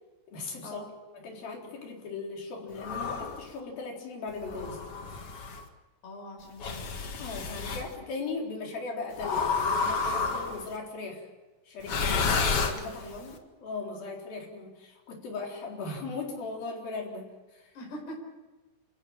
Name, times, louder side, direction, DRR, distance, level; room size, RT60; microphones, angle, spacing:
voice 1, 0.3-0.8 1.1-4.8 7.2-11.3 11.7-13.1 13.6-17.7, left 3 dB, 60° left, 0 dB, 5.7 m, -38 dB
sound 1, 2.8-3.5 4.4-5.6 6.6-7.9 9.2-10.7 11.8-13.2, left 4 dB, 45° left, 2.2 m, -30 dB
voice 2, 6.0-6.9 13.0-13.4 17.8-18.2, left 1 dB, 85° left, 0 dB, 6.9 m, -42 dB
28.5 x 15.5 x 9.0 m, 1.2 s
omnidirectional pair, 4.6 m